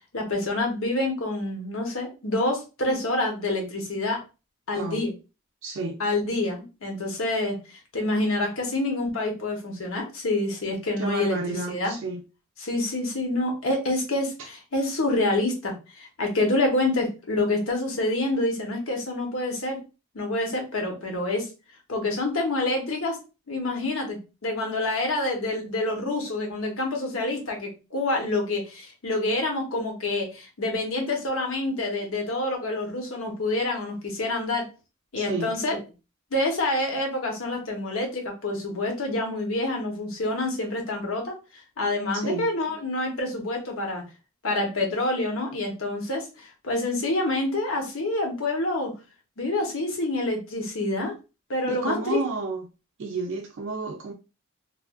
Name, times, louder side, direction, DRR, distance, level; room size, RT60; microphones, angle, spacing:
voice 1, 0.1-4.2 4.7-5.1 6.0-11.9 12.6-19.8 20.1-21.5 21.9-23.2 23.5-34.6 35.1-35.8 36.3-41.3 41.8-44.0 44.4-48.9 49.4-51.1 51.5-52.2, left 2 dB, 70° left, 0.9 m, -27 dB
voice 2, 5.6-6.0 11.0-12.2 35.2-35.5 42.1-42.5 51.7-52.7 53.0-54.1, right 3 dB, 60° right, 0.4 m, -31 dB
3.1 x 2.4 x 2.3 m
head